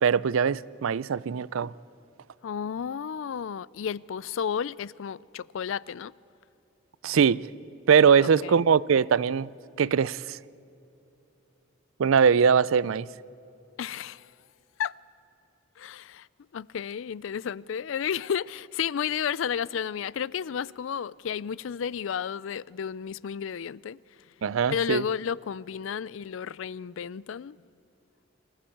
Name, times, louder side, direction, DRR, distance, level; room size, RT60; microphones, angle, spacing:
voice 1, 0.0-1.7 7.0-7.4 7.9-9.5 9.8-10.4 12.0-13.1 24.4-25.0, right 6 dB, 75° right, 0.4 m, -21 dB
voice 2, 2.4-6.1 8.4-8.6 13.8-14.3 14.8-14.9 15.8-16.3 16.5-24.0 24.7-27.6, left 7 dB, 65° left, 0.4 m, -32 dB
24.5 x 15.0 x 8.6 m
head